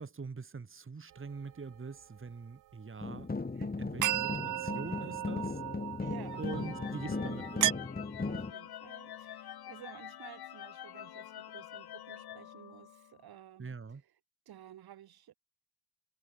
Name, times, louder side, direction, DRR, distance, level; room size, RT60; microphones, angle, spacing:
voice 1, 0.0-3.3 3.8-5.6 6.4-7.8 13.6-14.0, right 4 dB, 30° right, 2.3 m, -44 dB
sound 1, 1.2-1.3 4.0-7.7, right 14 dB, 55° right, 0.5 m, -35 dB
sound 2, 3.0-8.5, left 3 dB, 25° left, 2.0 m, -37 dB
voice 2, 3.5-3.9 6.0-7.3 8.2-14.1 14.4-15.3, right 11 dB, 70° right, 3.2 m, -53 dB
sound 3, 6.3-13.3, left 11 dB, 70° left, 5.5 m, -47 dB
hypercardioid pair, 45°, 39 cm